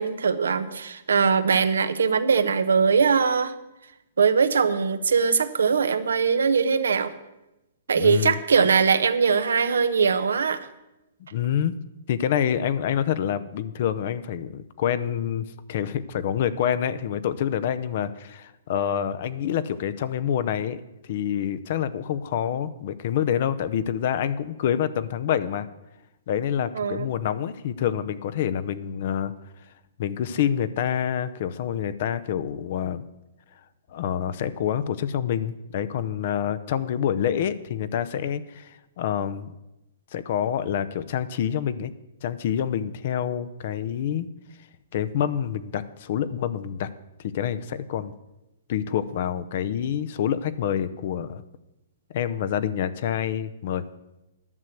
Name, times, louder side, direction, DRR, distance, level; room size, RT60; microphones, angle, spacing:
voice 1, 0.0-3.5 4.2-7.1 7.9-10.7 26.7-27.1, right 5 dB, 85° right, 11 dB, 0.8 m, -21 dB
voice 2, 8.0-8.4 11.3-11.8 12.1-25.7 26.3-29.3 30.0-33.1 33.9-39.5 40.1-41.9 42.2-44.3 44.9-46.9 47.2-48.1 48.7-51.4 52.1-53.8, left 9 dB, 55° left, 14 dB, 0.7 m, -27 dB
11.0 x 6.5 x 7.6 m, 0.94 s
hypercardioid pair, 140°, 0 cm